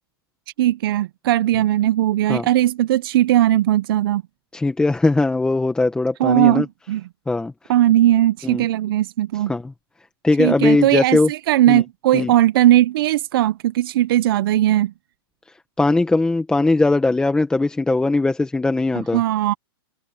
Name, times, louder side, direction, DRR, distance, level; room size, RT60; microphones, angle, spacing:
voice 1, 0.6-4.2 6.2-7.0 7.7-9.5 10.4-14.9 19.1-19.5, right 13 dB, 65° right, 0.7 m, -18 dB
voice 2, 4.5-6.7 7.3-7.5 8.4-8.6 9.5-9.7 10.2-11.3 11.7-11.8 12.1-12.3 15.8-19.2, left 2 dB, 5° left, 1.5 m, -19 dB
hypercardioid pair, 140°, 13 cm